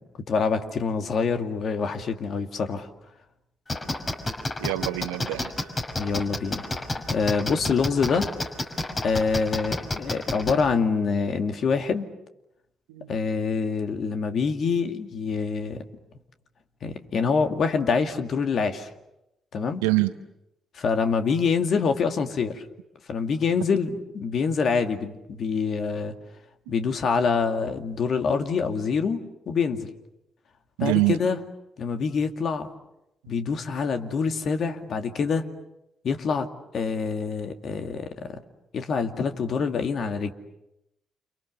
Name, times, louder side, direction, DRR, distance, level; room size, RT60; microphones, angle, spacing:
voice 1, 0.3-2.9 6.0-8.3 9.0-12.1 13.1-15.8 16.8-18.9 19.5-19.8 20.7-22.6 23.1-26.2 26.7-29.9 30.8-31.4 31.8-32.7 33.3-35.5 36.0-36.5 36.7-38.4 38.7-40.3, left 5 dB, 55° left, 6 dB, 2.3 m, -26 dB
sound 1, 3.7-10.6, left 2 dB, 35° left, 5.7 m, -28 dB
voice 2, 4.6-5.7 12.9-13.2 19.8-20.1 30.8-31.2, right 19 dB, 80° right, 11 dB, 1.1 m, -25 dB
29.5 x 28.5 x 6.8 m, 0.87 s
hypercardioid pair, 45°, 0 cm